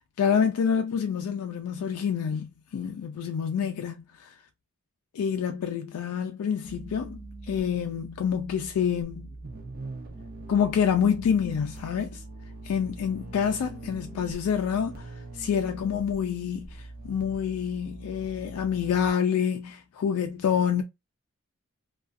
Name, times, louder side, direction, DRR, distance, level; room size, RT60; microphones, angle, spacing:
voice 1, 0.2-4.4 5.1-9.3 10.5-12.2 12.6-20.8, left 7 dB, 85° left, 0.3 m, -27 dB
sound 1, 6.6-19.1, right 2 dB, 40° right, 0.5 m, -43 dB
2.4 x 2.3 x 2.5 m
head